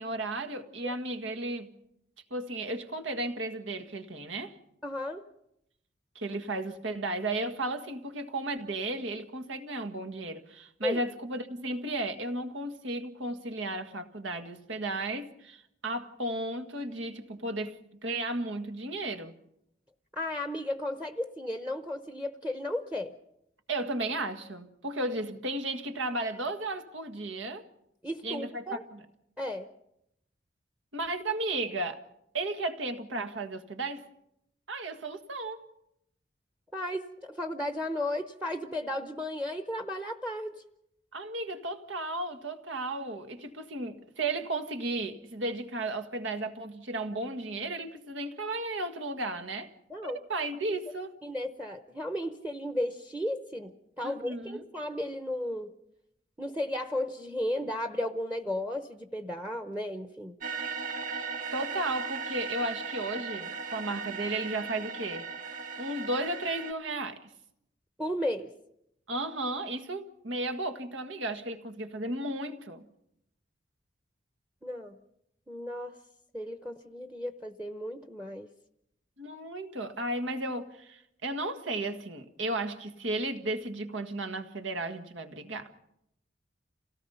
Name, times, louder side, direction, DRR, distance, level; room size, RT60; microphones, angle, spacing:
voice 1, 0.0-1.7 2.3-4.6 6.1-19.3 23.7-27.6 28.2-29.0 30.9-32.0 32.3-34.0 34.7-35.7 41.1-49.7 50.0-51.1 54.0-54.7 61.1-61.3 61.5-65.3 65.8-67.3 69.1-72.8 79.2-85.7, right 2 dB, 85° right, 1.8 m, -34 dB
voice 2, 4.8-5.2 10.8-11.0 20.1-23.1 28.0-28.8 29.4-29.7 36.7-40.6 49.9-50.2 51.2-55.7 56.4-60.4 68.0-68.5 74.6-75.0 75.5-75.9 76.3-78.5, left 1 dB, 5° right, 0.8 m, -34 dB
sound 1, 60.4-66.7, right 5 dB, 45° right, 1.0 m, -37 dB
27.5 x 18.0 x 5.7 m
head